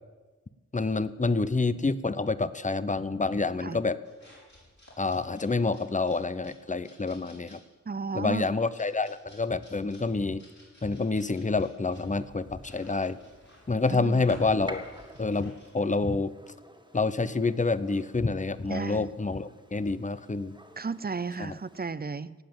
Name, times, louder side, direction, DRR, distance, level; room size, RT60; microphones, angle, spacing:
voice 1, 0.7-4.0 5.0-7.6 8.1-10.4 10.8-13.2 13.7-14.9 15.2-16.3 16.9-20.6 21.4-21.6, left 3 dB, 25° left, 15 dB, 0.7 m, -28 dB
sound 1, 4.0-15.9, left 1 dB, 70° left, 6.1 m, -54 dB
voice 2, 7.9-8.5 14.0-14.2 18.7-19.1 20.8-22.3, right 4 dB, 30° right, 16 dB, 0.5 m, -33 dB
Gunshot gunfire, 11.9-21.9, right 1 dB, 15° right, 1.8 m, -51 dB
18.0 x 7.6 x 8.8 m, 1.3 s
wide cardioid pair, 75°, 30 cm